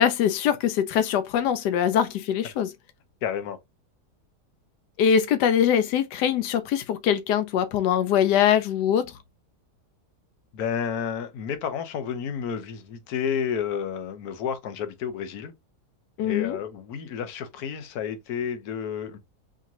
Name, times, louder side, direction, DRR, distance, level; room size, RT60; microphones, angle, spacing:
voice 1, 0.0-2.7 5.0-9.1 16.2-16.6, left 9 dB, 90° left, 1.2 m, -22 dB
voice 2, 3.2-3.6 10.5-15.5 16.2-19.2, left 7 dB, 70° left, 1.3 m, -31 dB
4.9 x 3.0 x 2.6 m
omnidirectional pair, 1.7 m